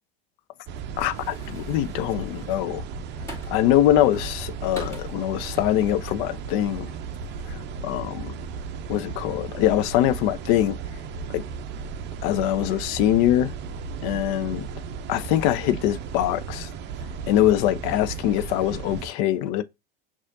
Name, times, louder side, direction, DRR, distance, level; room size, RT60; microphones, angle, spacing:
sound 1, 0.7-19.1, right 5 dB, 40° right, 0.5 m, -35 dB
voice 1, 1.0-2.8 3.5-6.9 7.5-8.3 8.9-10.8 11.3-11.4 12.2-13.5 14.0-14.7 15.1-16.7 17.3-19.6, left 12 dB, 50° left, 0.5 m, -23 dB
sound 2, 1.1-3.7 4.1-6.3 6.6-6.9, left 1 dB, 10° left, 2.1 m, -44 dB
6.2 x 2.5 x 2.6 m
hypercardioid pair, 85°, 29 cm